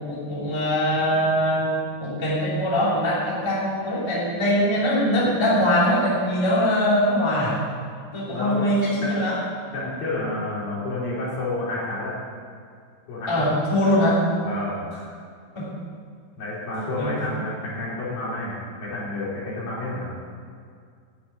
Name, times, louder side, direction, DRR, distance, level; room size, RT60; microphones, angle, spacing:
voice 1, 0.0-1.7 2.0-7.6 8.1-9.4 13.3-14.2 15.5-15.7 17.0-17.1, equal, 10° left, -7 dB, 2.2 m, -22 dB
voice 2, 8.2-8.7 9.0-9.2 9.7-12.2 13.1-13.6 14.4-14.8 16.4-20.1, left 2 dB, 65° left, -7 dB, 5.1 m, -30 dB
10.5 x 7.2 x 9.0 m, 2.2 s
omnidirectional pair, 4.7 m